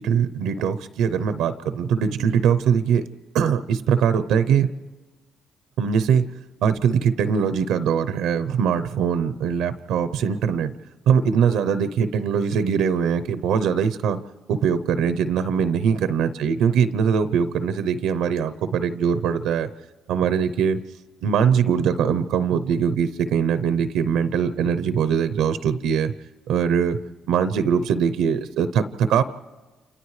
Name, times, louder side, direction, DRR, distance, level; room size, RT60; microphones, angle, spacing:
voice 1, 0.0-3.0 3.3-4.7 5.8-6.3 6.6-10.7 11.1-14.2 14.5-19.7 20.1-20.8 21.2-26.1 26.5-27.0 27.3-29.2, right 7 dB, 90° right, 13 dB, 0.6 m, -21 dB
28.5 x 28.0 x 3.2 m, 1.3 s
cardioid pair, 90°, 0 cm